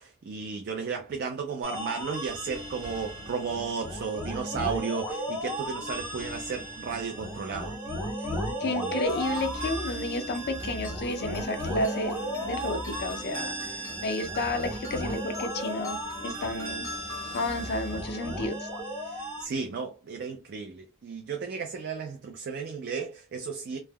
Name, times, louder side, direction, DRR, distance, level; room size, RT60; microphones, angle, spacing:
voice 1, 0.0-7.7 8.6-9.0 19.1-23.8, right 5 dB, 45° right, 0.4 m, -34 dB
sound 1, 1.6-19.4, equal, 10° right, 1.0 m, -35 dB
voice 2, 8.6-12.1 12.4-13.7 14.0-16.9 17.3-18.7, left 2 dB, 45° left, 0.4 m, -31 dB
sound 2, 9.0-18.7, left 1 dB, 15° left, 0.7 m, -41 dB
3.3 x 2.0 x 2.2 m
head